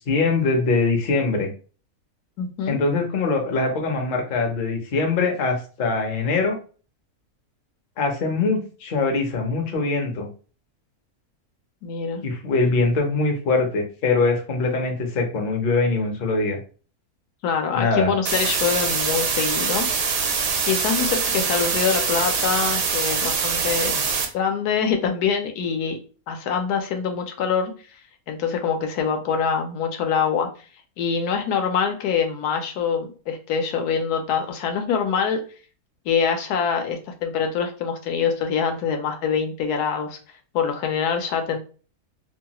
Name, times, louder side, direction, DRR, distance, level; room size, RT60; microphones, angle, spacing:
voice 1, 0.1-1.5 2.7-6.6 8.0-10.3 12.2-16.6 17.7-18.1, left 3 dB, 50° left, 2 dB, 0.6 m, -22 dB
voice 2, 2.4-2.8 11.8-12.2 17.4-19.9 20.7-24.1 24.3-26.0 26.3-27.7 28.3-30.5 31.0-35.4 36.1-40.2 40.5-41.6, left 6 dB, 90° left, 5 dB, 1.1 m, -24 dB
sound 1, 18.3-24.3, right 5 dB, 70° right, 1.0 m, -24 dB
2.8 x 2.3 x 2.8 m, 0.38 s
omnidirectional pair, 1.6 m